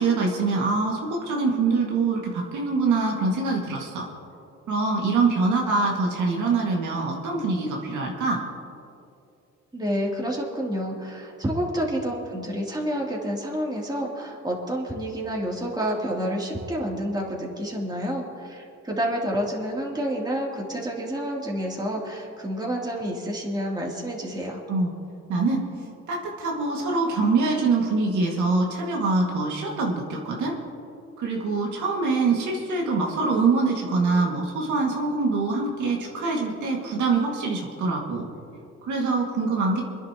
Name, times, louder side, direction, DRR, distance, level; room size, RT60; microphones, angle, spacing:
voice 1, 0.0-4.1 4.7-8.4 24.7-24.9 25.3-25.7 26.1-30.5 31.2-38.3 38.8-39.8, right 3 dB, 75° right, -2 dB, 2.1 m, -24 dB
voice 2, 9.7-24.6, equal, 15° right, -3 dB, 3.0 m, -29 dB
29.5 x 10.5 x 3.0 m, 2.6 s
cardioid pair, 90°, 30 cm